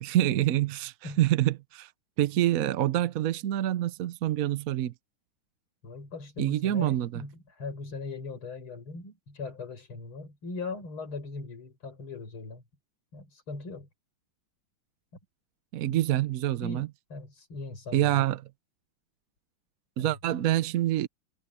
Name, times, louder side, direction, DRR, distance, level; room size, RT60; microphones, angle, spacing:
voice 1, 0.0-1.9 2.2-4.9 6.4-7.2 15.7-16.9 17.9-18.5 20.0-21.1, right 13 dB, 70° right, 0.8 m, -26 dB
voice 2, 5.8-12.6 13.1-13.9 15.9-16.1 16.6-18.3 20.0-20.1, left 3 dB, 80° left, 5.7 m, -39 dB
omnidirectional pair, 2.3 m